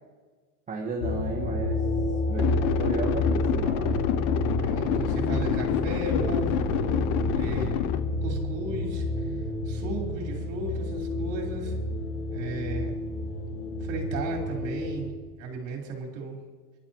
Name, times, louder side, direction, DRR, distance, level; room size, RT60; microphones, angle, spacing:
voice 1, 0.7-1.8 2.3-4.0, right 3 dB, 15° right, 0 dB, 1.1 m, -33 dB
sound 1, 1.0-15.1, left 2 dB, 75° left, 5.4 m, -29 dB
sound 2, 2.4-8.0, left 10 dB, 40° left, 0.8 m, -28 dB
voice 2, 4.6-7.9 8.2-9.4 9.7-11.8 12.3-13.0 13.8-16.4, right 3 dB, 40° right, 0 dB, 4.2 m, -35 dB
23.0 x 12.0 x 3.0 m, 1.4 s
supercardioid pair, 130°, 45 cm